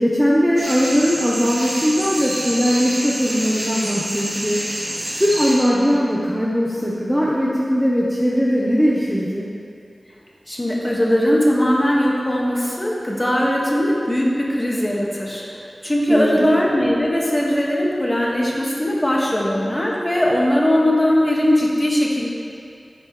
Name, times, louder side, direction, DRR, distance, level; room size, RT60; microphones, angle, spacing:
voice 1, 0.0-9.5 16.1-16.5, equal, 5° right, -5 dB, 1.1 m, -20 dB
sound 1, 0.6-5.6, right 1 dB, 45° right, 2.4 m, -27 dB
voice 2, 10.5-15.4 15.8-22.3, left 1 dB, 20° left, -4 dB, 1.9 m, -19 dB
13.5 x 9.3 x 3.3 m, 2.4 s
wide cardioid pair, 85°, 0 cm